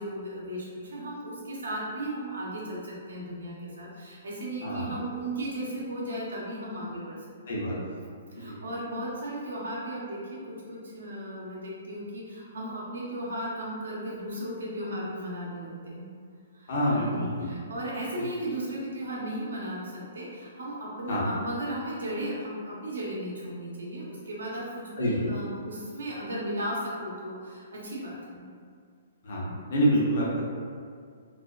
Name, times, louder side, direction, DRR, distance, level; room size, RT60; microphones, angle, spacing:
voice 1, 0.0-7.2 7.5-7.6 8.3-16.1 16.5-28.4, right 1 dB, 90° right, -5 dB, 0.7 m, -36 dB
voice 2, 7.5-8.0 8.4-8.6 16.7-17.2 21.1-21.2 25.0-25.2 29.2-29.4 29.7-30.4, equal, 60° left, -5 dB, 0.7 m, -26 dB
2.5 x 2.1 x 2.3 m, 2.1 s
hypercardioid pair, 150°, 0 cm